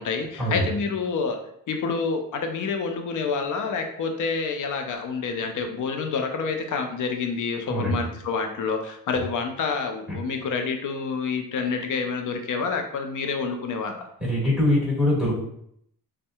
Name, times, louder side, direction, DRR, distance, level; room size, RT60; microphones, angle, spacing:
voice 1, 0.0-1.4 1.7-14.0, left 5 dB, 55° left, 5 dB, 0.5 m, -28 dB
voice 2, 7.7-8.1 10.1-10.2 14.2-15.4, left 1 dB, ahead, -8 dB, 1.5 m, -23 dB
2.6 x 2.2 x 2.2 m, 0.73 s
supercardioid pair, 50°, 39 cm